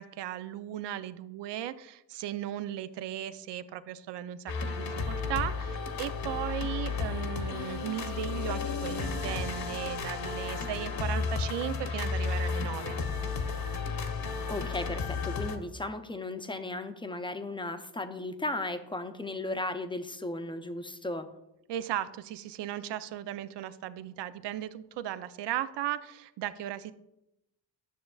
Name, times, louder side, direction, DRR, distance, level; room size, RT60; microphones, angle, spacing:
voice 1, 0.0-13.0 21.7-26.9, right 12 dB, 75° right, 14 dB, 0.5 m, -36 dB
sound 1, 4.5-15.6, left 5 dB, 55° left, 1.0 m, -33 dB
voice 2, 14.5-21.3, left 2 dB, 10° left, 8 dB, 0.6 m, -35 dB
10.0 x 6.5 x 2.3 m, 0.88 s
cardioid pair, 65°, 43 cm